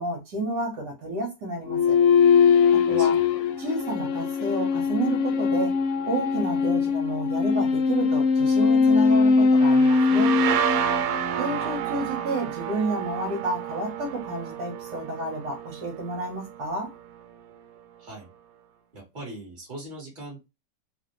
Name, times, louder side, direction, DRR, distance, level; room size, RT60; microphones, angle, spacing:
voice 1, 0.0-2.0 2.7-3.2 3.6-5.7 6.1-10.3 11.4-16.9, right 2 dB, 70° right, 1.8 m, -30 dB
sound 1, 1.7-11.3, left 5 dB, 80° left, 0.6 m, -21 dB
voice 2, 2.9-3.3 11.3-12.1 18.0-18.3 18.9-20.5, right 2 dB, 30° right, 1.8 m, -42 dB
sound 2, 9.6-17.1, right 9 dB, 85° right, 1.3 m, -30 dB
4.0 x 2.5 x 3.1 m
omnidirectional pair, 1.9 m